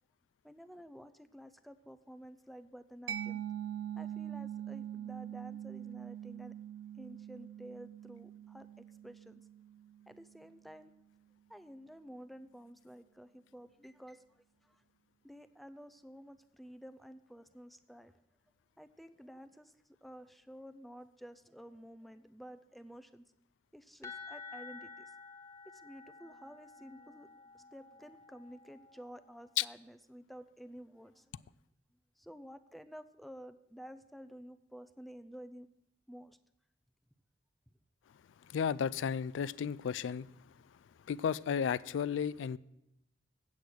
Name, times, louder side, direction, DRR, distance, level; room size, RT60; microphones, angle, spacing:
voice 1, 0.4-3.4 4.0-6.6 7.0-9.4 10.1-10.9 11.5-14.2 14.6-14.8 15.2-18.1 18.8-19.7 20.0-23.2 23.7-25.1 25.7-31.5 32.2-35.7 36.1-36.4, equal, ahead, 0.4 m, -52 dB
Mallet percussion, 3.1-10.5, right 10 dB, 75° right, 0.5 m, -43 dB
sound 1, 24.0-29.6, left 4 dB, 15° left, 1.0 m, -51 dB
voice 2, 38.5-40.3 41.1-42.6, left 7 dB, 75° left, 0.3 m, -33 dB
8.5 x 8.1 x 6.1 m
head